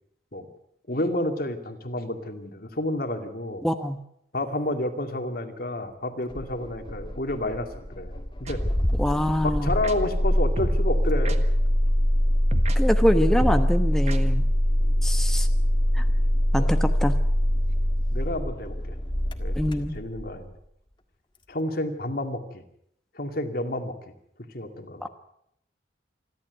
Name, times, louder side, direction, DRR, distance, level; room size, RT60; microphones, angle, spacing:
voice 1, 0.9-3.6 4.3-8.6 9.4-11.4 14.8-15.0 16.6-16.7 18.1-19.0 19.4-19.5 19.9-20.5 21.5-22.6 23.1-24.0 24.5-25.1, left 1 dB, 50° left, 6 dB, 2.4 m, -30 dB
voice 2, 3.6-4.0 9.0-9.7 12.7-14.5 15.0-15.5 15.9-16.0 16.5-17.2 19.5-20.0 25.0-25.1, equal, 5° left, 6 dB, 1.1 m, -24 dB
Engine starting, 6.3-20.4, equal, 25° left, 1.7 m, -23 dB
sound 1, 8.5-8.6 9.8-9.9 10.6-10.8 11.2-11.4 12.5-12.8 13.4-13.6 14.1-14.2, right 1 dB, 35° right, 1.5 m, -30 dB
28.5 x 12.0 x 8.1 m, 0.74 s
head